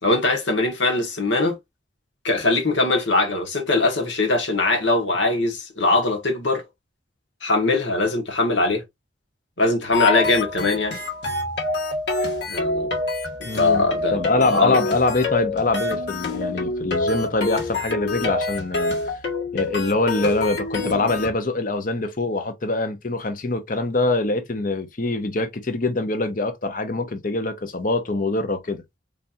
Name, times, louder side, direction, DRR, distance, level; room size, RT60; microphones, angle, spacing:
voice 1, 0.0-1.5 2.2-6.6 7.4-8.8 9.6-10.9 12.5-13.0 13.5-14.2 14.5-14.8, left 2 dB, 80° left, 1.5 m, -21 dB
sound 1, 9.9-21.3, left 3 dB, 65° left, 1.7 m, -26 dB
voice 2, 13.4-13.8 14.1-19.0 19.5-28.8, left 2 dB, 45° left, 0.8 m, -24 dB
4.1 x 3.4 x 2.6 m
head